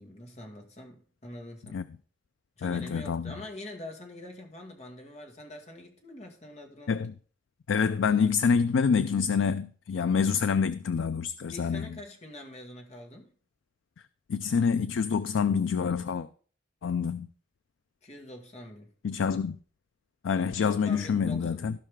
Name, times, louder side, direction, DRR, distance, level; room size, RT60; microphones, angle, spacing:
voice 1, 0.0-1.8 2.6-7.0 11.5-13.3 18.0-18.9 20.6-21.8, left 1 dB, 35° left, 2.0 m, -45 dB
voice 2, 2.6-3.3 6.9-7.1 7.7-11.9 14.3-16.3 16.8-17.3 19.0-19.6 20.2-21.8, left 6 dB, 85° left, 0.4 m, -26 dB
15.5 x 5.6 x 3.7 m
head